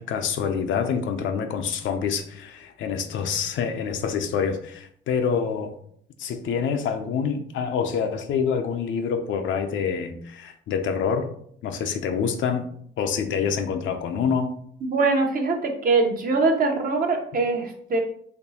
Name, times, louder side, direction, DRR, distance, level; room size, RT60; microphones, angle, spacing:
voice 1, 0.0-5.7 6.2-11.3 11.6-12.7 13.0-14.5, left 6 dB, 75° left, 6 dB, 0.6 m, -26 dB
voice 2, 14.8-18.0, right 3 dB, 45° right, 3 dB, 0.9 m, -22 dB
4.3 x 3.0 x 2.8 m, 0.63 s
cardioid pair, 90°, 20 cm